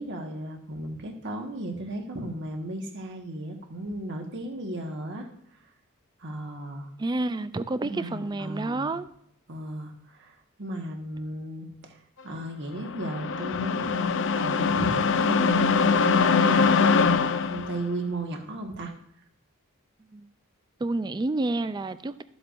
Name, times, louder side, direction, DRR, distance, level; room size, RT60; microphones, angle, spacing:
voice 1, 0.0-5.3 6.2-6.9 7.8-8.9 9.5-18.9, right 1 dB, 55° right, 3 dB, 1.4 m, -35 dB
voice 2, 7.0-9.1 20.1-20.3 20.8-22.2, right 2 dB, 20° right, 14 dB, 0.3 m, -29 dB
sound 1, 12.7-17.8, left 5 dB, 60° left, 0.5 m, -23 dB
13.0 x 7.8 x 2.5 m, 0.73 s
head